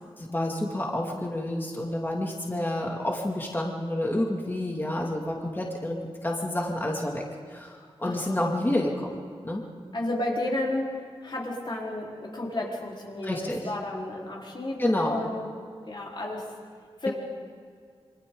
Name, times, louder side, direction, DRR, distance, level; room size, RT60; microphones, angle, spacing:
voice 1, 0.2-9.2 9.4-9.6 13.2-13.7 14.8-15.2, left 1 dB, 20° left, -1 dB, 2.4 m, -29 dB
voice 2, 8.0-8.4 9.9-10.9 11.2-13.4 13.6-15.5 15.9-16.4 17.0-17.1, left 1 dB, 50° left, -3 dB, 4.2 m, -32 dB
28.0 x 25.0 x 3.9 m, 2.2 s
wide cardioid pair, 110°, 11 cm